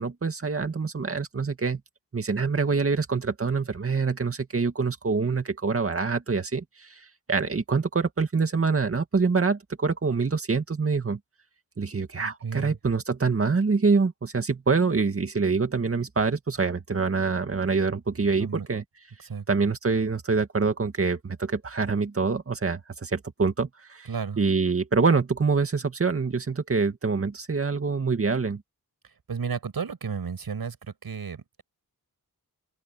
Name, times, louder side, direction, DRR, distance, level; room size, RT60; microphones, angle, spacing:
voice 1, 0.0-1.8 2.1-11.2 11.8-18.8 19.5-24.1 24.4-28.6, right 4 dB, 35° right, 2.1 m, -25 dB
voice 2, 12.2-12.8 18.4-18.7 19.2-19.4 24.1-24.4 29.3-31.6, right 6 dB, 70° right, 5.5 m, -33 dB
open air
wide cardioid pair, 155°, 38 cm